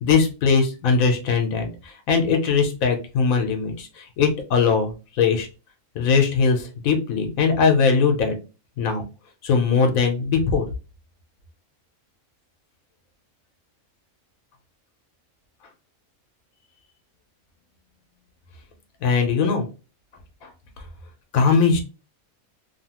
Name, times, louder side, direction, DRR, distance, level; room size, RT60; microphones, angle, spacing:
voice 1, 0.0-1.7 2.1-5.5 5.9-8.4 8.8-9.0 9.4-10.7 19.0-19.7 21.3-21.8, left 5 dB, 85° left, 4 dB, 1.2 m, -20 dB
3.0 x 2.4 x 2.8 m, 0.31 s
omnidirectional pair, 1.4 m